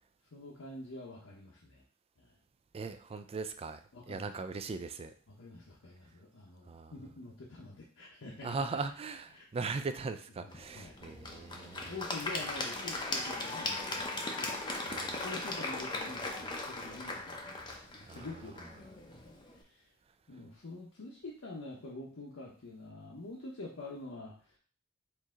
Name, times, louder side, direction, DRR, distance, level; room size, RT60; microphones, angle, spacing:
voice 1, 0.3-1.8 2.2-2.4 3.9-4.4 5.3-8.5 9.3-9.5 10.4-11.0 11.5-14.5 14.9-17.6 17.9-19.9 20.3-24.6, left 2 dB, 80° left, -3 dB, 0.8 m, -47 dB
voice 2, 2.7-3.8 4.1-5.1 6.7-6.9 8.4-11.9 14.9-15.3 18.0-18.3, right 4 dB, 30° right, 9 dB, 0.3 m, -39 dB
Applause / Crowd, 10.5-19.6, left 2 dB, 20° left, 0.6 m, -38 dB
4.5 x 2.7 x 3.6 m, 0.42 s
head